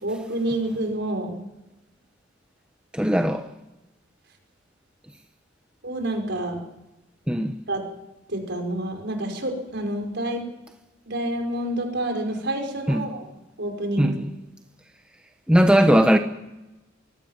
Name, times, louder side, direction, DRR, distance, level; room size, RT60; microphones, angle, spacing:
voice 1, 0.0-1.4 5.8-6.6 7.7-7.8 8.3-10.4 11.1-13.3 13.6-14.2, right 1 dB, 55° right, 5.4 m, -28 dB
voice 2, 2.9-3.5 7.3-7.6 12.9-13.1 14.0-14.3 15.5-16.2, equal, 5° right, 1.0 m, -19 dB
24.0 x 17.5 x 7.4 m
head